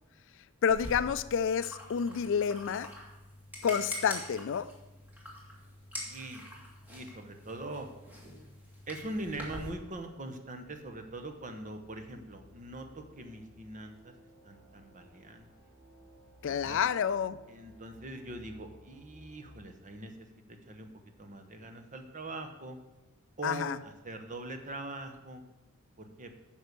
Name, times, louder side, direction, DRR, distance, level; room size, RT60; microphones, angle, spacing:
voice 1, 0.6-2.9 3.6-4.7 16.4-17.4 23.4-23.8, left 7 dB, 60° left, 15 dB, 0.4 m, -29 dB
sound 1, 0.7-9.7, left 1 dB, 10° right, 2.0 m, -45 dB
voice 2, 5.9-6.5 6.9-7.9 8.9-14.1 14.4-15.5 16.5-16.8 17.5-20.9 21.2-22.8 23.4-25.4 26.0-26.3, right 2 dB, 35° right, 6 dB, 1.0 m, -42 dB
sound 2, 8.8-19.6, equal, 90° right, 3.4 m, -59 dB
9.6 x 5.5 x 6.6 m, 1.0 s
head